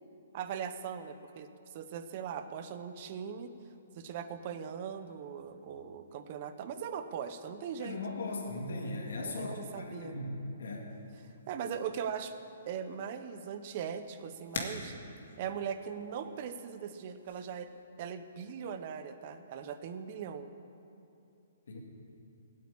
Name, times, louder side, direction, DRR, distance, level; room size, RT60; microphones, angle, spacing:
voice 1, 0.3-1.5 1.7-3.5 3.9-8.0 9.2-10.2 11.5-12.3 12.7-15.0 15.4-17.7 18.0-20.5, right 7 dB, 30° right, 10 dB, 0.7 m, -40 dB
voice 2, 7.8-10.9 21.7-21.8, left 2 dB, 70° left, -2 dB, 3.1 m, -38 dB
sound 1, 10.9-17.8, left 4 dB, 50° left, 2.0 m, -47 dB
17.5 x 8.7 x 8.6 m, 2.7 s
hypercardioid pair, 175°, 0 cm